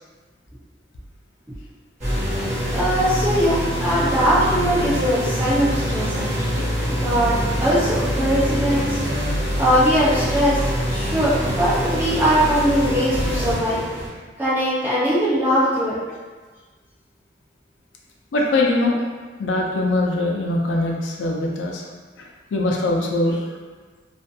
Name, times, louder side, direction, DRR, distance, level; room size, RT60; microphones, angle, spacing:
sound 1, 2.0-14.1, equal, 40° right, 1.0 m, -24 dB
voice 1, 2.7-7.4 7.6-9.0 9.6-10.6 10.9-13.9 14.4-16.0, equal, 10° right, -12 dB, 0.8 m, -21 dB
voice 2, 18.3-19.0 19.4-21.8 22.2-23.5, left 2 dB, 85° left, -1 dB, 0.4 m, -22 dB
2.5 x 2.2 x 2.6 m, 1.4 s
head